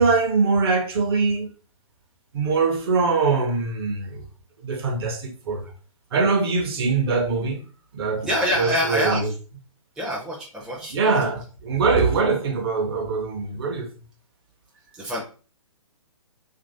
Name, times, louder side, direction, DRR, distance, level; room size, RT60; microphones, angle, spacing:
voice 1, 0.0-1.5 2.3-4.2 4.6-5.6 6.1-7.6 7.9-8.3 8.6-9.3 10.9-13.9, right 4 dB, 45° right, 0.7 m, -22 dB
voice 2, 8.2-9.3 10.0-11.2 14.9-15.2, equal, 5° right, 0.5 m, -26 dB
2.9 x 2.6 x 2.6 m
figure-of-eight pair, 130°, 18 cm